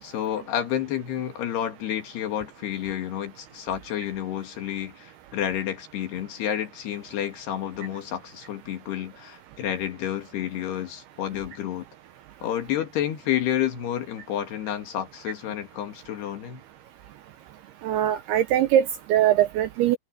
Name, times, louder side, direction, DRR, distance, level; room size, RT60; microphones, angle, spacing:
voice 1, 0.0-11.9 12.4-16.6, left 10 dB, 65° left, 3.8 m, -30 dB
voice 2, 17.8-20.0, right 12 dB, 80° right, 2.4 m, -21 dB
omnidirectional pair, 5.3 m